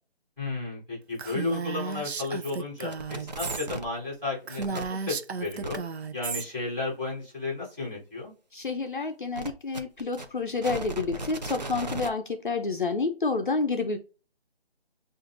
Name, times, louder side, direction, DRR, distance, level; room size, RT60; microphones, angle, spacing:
voice 1, 0.4-5.8 6.1-8.3, left 3 dB, 5° right, -7 dB, 2.1 m, -33 dB
Female speech woman speaking, 1.2-3.7 4.0-4.1 4.4-6.5, right 5 dB, 85° right, 0.6 m, -34 dB
sound 1, 2.9-3.9 4.6-4.8 5.6-5.8 9.4-12.1, right 2 dB, 45° right, 0.6 m, -36 dB
voice 2, 8.5-14.0, left 4 dB, 50° left, 6 dB, 0.6 m, -29 dB
7.1 x 2.6 x 2.4 m, 0.35 s
figure-of-eight pair, 170°, 32 cm